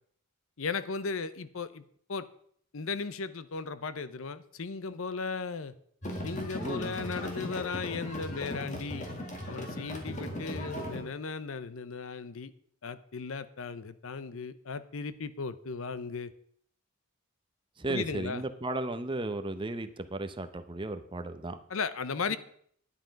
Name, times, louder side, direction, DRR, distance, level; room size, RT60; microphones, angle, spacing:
voice 1, 0.6-1.8 2.1-2.3 2.7-5.7 6.2-9.1 9.5-12.5 12.8-16.3 17.9-18.4 21.7-22.4, left 4 dB, 70° left, 15 dB, 0.7 m, -36 dB
sound 1, 6.0-11.0, equal, 35° left, 2.2 m, -38 dB
voice 2, 6.6-7.0 17.8-21.6 22.3-22.4, right 2 dB, 25° right, 9 dB, 0.7 m, -35 dB
10.0 x 9.7 x 5.2 m, 0.62 s
head